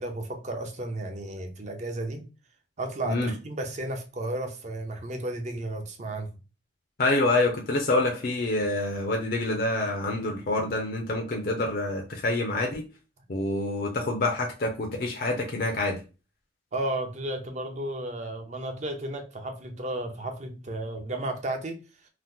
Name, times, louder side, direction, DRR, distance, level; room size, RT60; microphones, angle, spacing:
voice 1, 0.0-2.3 2.8-6.3 16.7-21.8, right 1 dB, 40° right, 0.6 m, -33 dB
voice 2, 7.0-12.8 13.3-16.0, left 2 dB, 55° left, 0.5 m, -27 dB
2.8 x 2.0 x 3.5 m
head